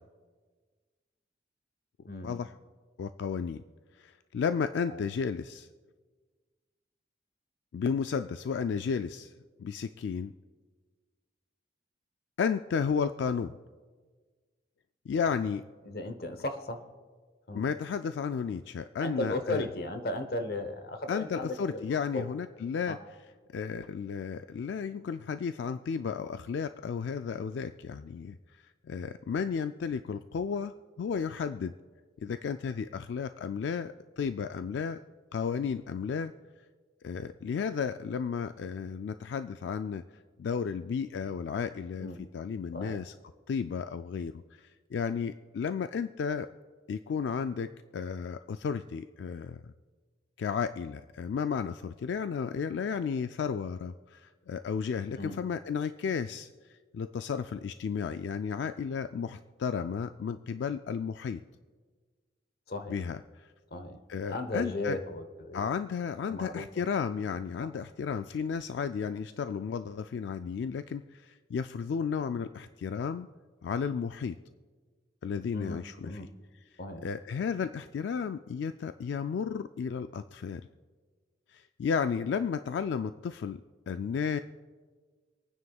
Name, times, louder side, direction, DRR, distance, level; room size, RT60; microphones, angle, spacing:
voice 1, 2.1-2.4 4.9-5.0 15.8-16.8 17.5-17.6 19.0-22.3 22.9-23.0 42.0-42.2 42.7-43.0 55.2-55.4 62.7-63.0 63.7-64.0 64.2-65.7 66.3-66.9 67.6-67.7 75.5-76.3 76.8-77.1, left 2 dB, 60° left, 8 dB, 0.9 m, -36 dB
voice 2, 3.0-3.6 4.0-5.7 7.7-9.3 9.6-10.3 12.4-13.6 15.1-15.6 17.5-19.7 21.1-23.0 23.5-31.7 32.2-35.0 35.3-36.3 37.0-40.0 40.4-42.1 42.3-43.1 43.5-46.5 46.9-49.7 50.4-56.5 56.9-61.4 62.9-63.5 64.1-65.0 65.5-73.3 73.6-74.4 75.2-76.2 77.0-80.7 81.5-83.6 83.9-84.4, left 6 dB, 90° left, 10 dB, 0.3 m, -33 dB
26.5 x 9.5 x 2.3 m, 1.5 s
head